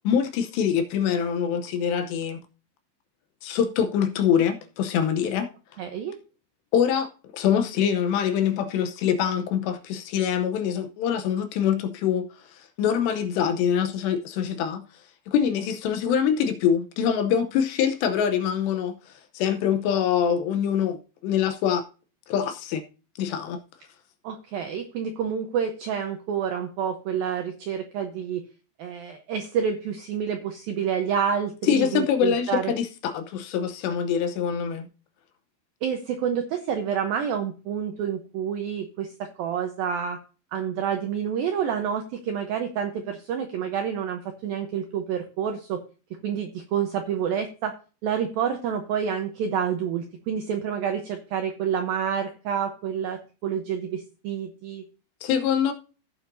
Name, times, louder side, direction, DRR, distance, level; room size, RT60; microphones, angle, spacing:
voice 1, 0.0-2.4 3.4-5.5 6.7-14.8 15.3-21.8 22.3-22.8 23.2-23.6 31.7-34.9 55.2-55.7, left 8 dB, 75° left, 2.8 m, -24 dB
voice 2, 5.8-6.2 24.2-28.4 28.8-32.7 35.8-40.2 40.5-45.8 46.2-47.8 48.0-54.8, right 8 dB, 80° right, 2.1 m, -28 dB
16.5 x 7.2 x 2.6 m
omnidirectional pair, 5.4 m